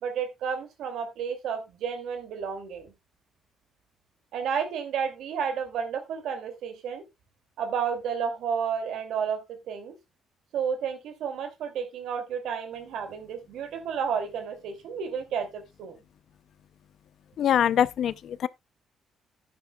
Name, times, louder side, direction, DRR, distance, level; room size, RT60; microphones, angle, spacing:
voice 1, 0.0-2.9 4.3-7.0 7.6-10.0 10.5-16.0, right 7 dB, 80° right, 2.5 m, -31 dB
voice 2, 17.4-18.5, left 9 dB, 70° left, 0.5 m, -24 dB
11.0 x 9.5 x 2.2 m
cardioid pair, 90°, 0 cm